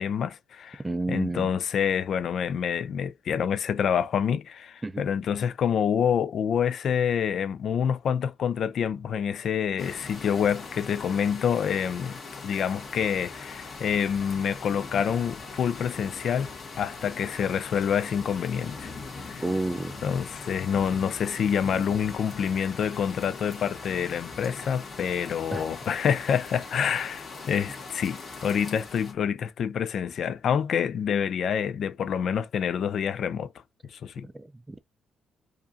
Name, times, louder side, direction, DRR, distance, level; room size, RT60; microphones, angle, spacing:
voice 1, 0.0-0.8 1.1-16.5 16.8-18.9 19.2-19.4 20.0-33.5 33.9-34.3, left 8 dB, 60° left, 0.4 m, -27 dB
voice 2, 0.8-1.6 4.8-5.0 19.4-19.9 25.5-25.7 34.2-34.8, right 2 dB, 15° right, 0.4 m, -30 dB
sound 1, 9.8-29.1, left 4 dB, 40° left, 1.6 m, -41 dB
4.8 x 2.5 x 2.6 m
cardioid pair, 90°, 0 cm